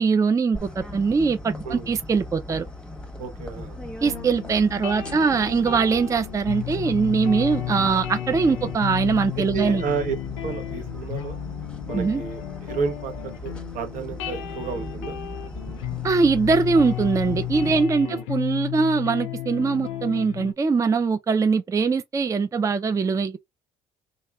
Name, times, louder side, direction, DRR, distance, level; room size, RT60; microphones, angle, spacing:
voice 1, 0.0-2.7 4.0-9.8 11.9-12.2 16.0-23.4, right 5 dB, 20° right, 0.4 m, -22 dB
sound 1, 0.5-17.8, left 2 dB, 5° left, 0.9 m, -38 dB
voice 2, 3.2-3.8 8.4-8.7 9.5-10.2 10.4-11.4 11.9-15.2 18.0-18.2, right 5 dB, 60° right, 0.8 m, -31 dB
sound 2, 4.1-20.5, left 12 dB, 85° left, 0.5 m, -33 dB
2.9 x 2.3 x 2.3 m
hypercardioid pair, 60°, 15 cm